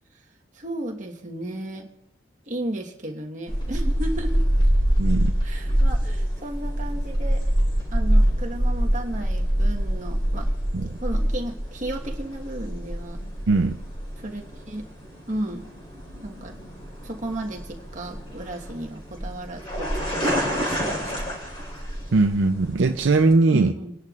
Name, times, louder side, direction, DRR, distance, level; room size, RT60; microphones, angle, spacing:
voice 1, 0.5-1.9 2.5-4.5 5.4-7.4 7.9-10.5 10.8-13.2 14.2-14.8 15.3-15.7 16.2-16.5 17.0-21.1 23.5-23.9, right 1 dB, 40° right, 0 dB, 1.4 m, -34 dB
sound 1, 3.5-23.3, equal, 30° left, 3.9 m, -26 dB
voice 2, 5.0-5.3 10.7-10.9 13.5-13.8 22.1-23.7, right 3 dB, 75° right, 5 dB, 0.6 m, -20 dB
28.0 x 11.0 x 2.4 m, 0.76 s
head